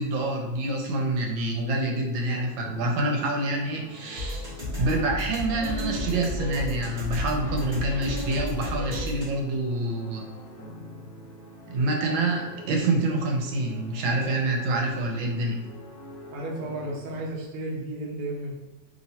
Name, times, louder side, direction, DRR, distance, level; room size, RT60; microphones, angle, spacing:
voice 1, 0.0-4.4 4.8-10.3 11.7-15.6, right 2 dB, 80° right, 1 dB, 1.5 m, -27 dB
sound 1, 2.3-17.3, left 1 dB, 70° left, 0.9 m, -45 dB
sound 2, 4.2-9.2, left 1 dB, 25° right, 1.4 m, -32 dB
voice 2, 16.3-18.6, right 1 dB, 55° right, -2 dB, 1.0 m, -33 dB
3.0 x 3.0 x 4.1 m, 1.1 s
omnidirectional pair, 2.1 m